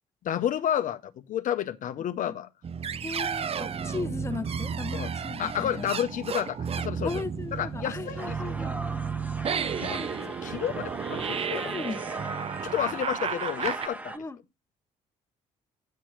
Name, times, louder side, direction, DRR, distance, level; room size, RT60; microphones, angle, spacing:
voice 1, 0.2-2.5 4.9-5.1 5.4-7.2 7.5-8.6 9.8-11.7 12.7-14.1, left 10 dB, 55° left, 0.6 m, -31 dB
sound 1, 2.6-13.9, right 6 dB, 40° right, 0.6 m, -33 dB
voice 2, 3.0-5.9 7.0-8.8 9.8-10.1 11.2-11.3 11.6-12.0 14.1-14.4, left 4 dB, 15° left, 0.9 m, -37 dB
sound 2, 8.2-14.2, right 1 dB, 10° right, 1.1 m, -39 dB
9.4 x 4.2 x 6.3 m
supercardioid pair, 65°, 16 cm